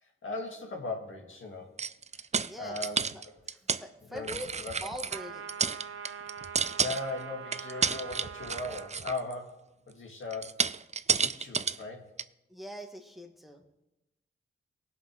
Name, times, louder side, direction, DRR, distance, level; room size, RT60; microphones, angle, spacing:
voice 1, 0.0-1.7 2.6-3.0 3.3-3.4 4.1-4.7 6.8-10.7 11.1-12.1, left 2 dB, 70° left, 0 dB, 2.1 m, -38 dB
sound 1, 1.8-3.8 4.2-5.2 5.5-7.2 7.5-9.3 10.3-11.8 12.2-12.3, right 5 dB, 35° right, 0.4 m, -31 dB
voice 2, 2.4-2.8 3.1-5.5 12.5-13.6, equal, ahead, 3 dB, 1.6 m, -43 dB
sound 2, 5.1-8.9, right 6 dB, 85° right, 0.7 m, -43 dB
18.0 x 6.0 x 3.8 m, 0.92 s
cardioid pair, 55°, 21 cm